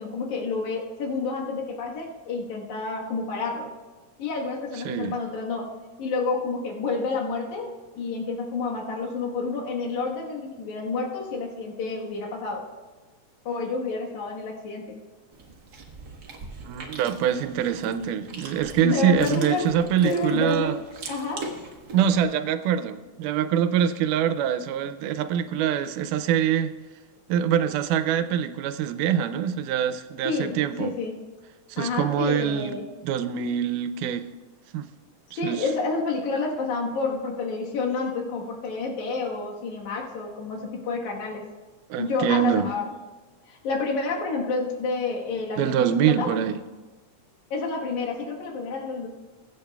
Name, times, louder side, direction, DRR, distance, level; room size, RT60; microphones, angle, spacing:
voice 1, 0.0-3.7 4.2-12.7 13.5-15.0 18.8-19.7 20.0-20.8 21.1-21.5 30.2-31.2 31.8-32.9 35.3-41.5 42.0-42.9 43.5-46.3 47.5-49.1, left 4 dB, 70° left, -1 dB, 2.8 m, -29 dB
voice 2, 4.9-5.2 16.6-20.7 21.9-26.7 27.3-31.0 31.7-32.7 33.0-34.3 34.7-34.9 35.4-35.7 41.9-42.7 45.6-46.6, right 9 dB, 90° right, 12 dB, 2.1 m, -24 dB
Chewing mastication, 15.3-22.2, right 3 dB, 55° right, 1.2 m, -42 dB
22.5 x 8.1 x 2.3 m, 1.2 s
omnidirectional pair, 3.6 m